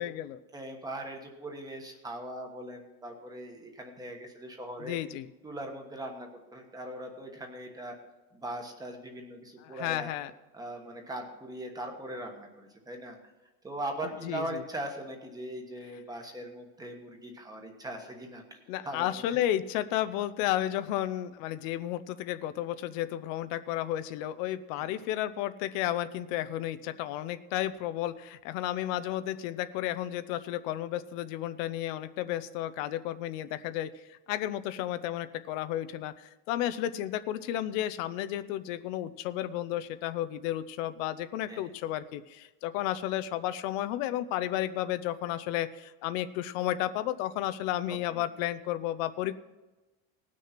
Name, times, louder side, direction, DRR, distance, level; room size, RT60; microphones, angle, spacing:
voice 1, 0.0-0.4 4.8-5.3 9.6-10.3 14.2-14.6 18.7-49.4, left 13 dB, 90° left, 12 dB, 0.8 m, -32 dB
voice 2, 0.5-5.0 5.4-8.0 8.3-10.1 10.5-13.2 13.6-18.6 18.8-19.1 19.3-19.4 24.8-24.9 41.5-41.6 47.9-48.2, right 1 dB, 10° right, 3 dB, 1.2 m, -40 dB
18.5 x 6.4 x 5.8 m, 1.1 s
cardioid pair, 175°, 38 cm